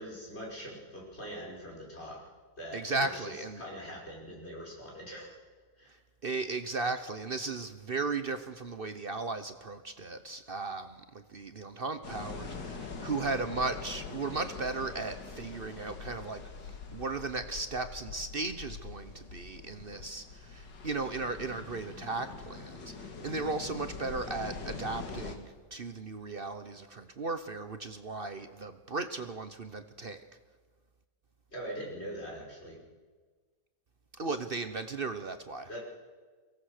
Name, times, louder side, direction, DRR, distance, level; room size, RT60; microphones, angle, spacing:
voice 1, 0.0-2.2 2.6-3.3 3.6-5.4 5.8-5.9 31.5-32.8 35.7-35.8, equal, 35° left, -2 dB, 5.9 m, -42 dB
voice 2, 2.7-3.6 6.2-30.2 34.1-35.7, right 3 dB, 45° right, 9 dB, 0.8 m, -36 dB
sound 1, 12.0-25.4, left 4 dB, 75° left, 2.6 m, -44 dB
23.0 x 17.5 x 6.6 m, 1.4 s
omnidirectional pair, 1.9 m